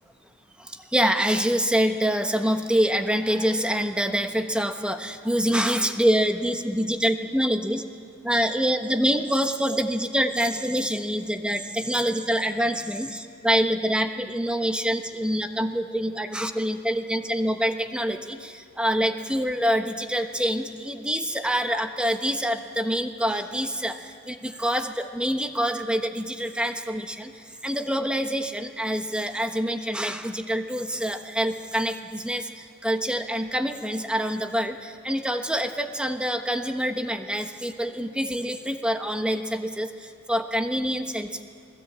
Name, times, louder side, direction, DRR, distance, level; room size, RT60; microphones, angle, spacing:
voice 1, 0.9-7.8 8.2-24.0 24.3-27.3 27.6-32.5 32.8-39.9 40.3-41.5, equal, 5° right, 6 dB, 1.2 m, -26 dB
29.5 x 20.0 x 8.8 m, 2.2 s
head